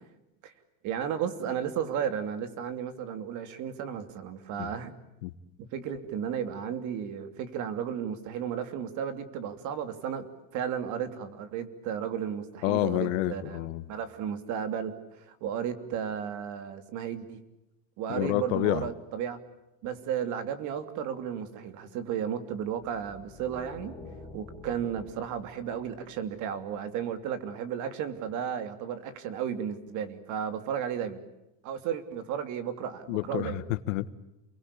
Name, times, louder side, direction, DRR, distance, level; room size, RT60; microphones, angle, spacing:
voice 1, 0.8-5.0 5.6-10.3 10.5-17.4 18.0-19.4 19.8-24.0 24.3-31.2 31.6-33.6, right 8 dB, 45° right, 10 dB, 3.0 m, -34 dB
voice 2, 12.6-13.8 18.1-18.8 33.1-34.1, left 17 dB, 70° left, 14 dB, 1.5 m, -29 dB
sound 1, 22.7-26.9, left 3 dB, 5° left, 5.5 m, -49 dB
29.5 x 22.5 x 8.5 m, 0.94 s
supercardioid pair, 145°, 40 cm